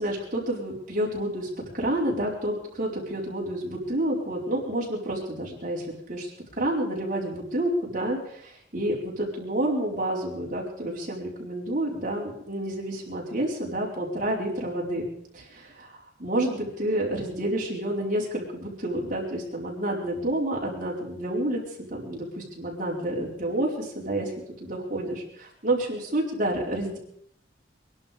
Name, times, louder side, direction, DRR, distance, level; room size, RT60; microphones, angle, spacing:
voice 1, 0.0-1.5 1.7-15.1 15.3-24.3 24.6-27.0, right 1 dB, 45° right, -3 dB, 4.5 m, -29 dB
22.5 x 11.5 x 5.2 m, 0.72 s
head